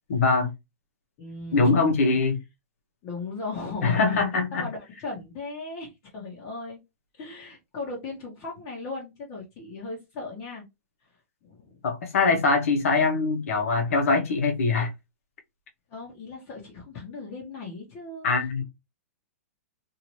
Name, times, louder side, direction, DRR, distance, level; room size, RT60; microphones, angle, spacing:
voice 1, 0.1-0.5 1.5-2.4 3.8-4.6 11.8-14.9 18.2-18.6, left 4 dB, 70° left, 1.1 m, -22 dB
voice 2, 1.2-2.2 3.0-6.8 7.1-10.6 11.0-11.8 15.9-18.6, left 3 dB, 35° left, 1.2 m, -37 dB
2.8 x 2.8 x 3.0 m
hypercardioid pair, 150°, 8 cm